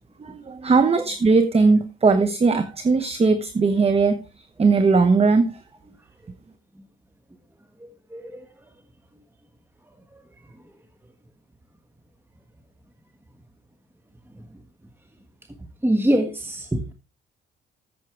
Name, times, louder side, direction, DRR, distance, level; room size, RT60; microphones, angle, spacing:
voice 1, 0.2-4.2 4.6-5.6, right 4 dB, 30° right, 10 dB, 1.1 m, -19 dB
voice 2, 15.8-16.9, right 1 dB, 10° right, 6 dB, 1.4 m, -23 dB
14.0 x 7.5 x 3.4 m, 0.30 s
cardioid pair, 90°, 20 cm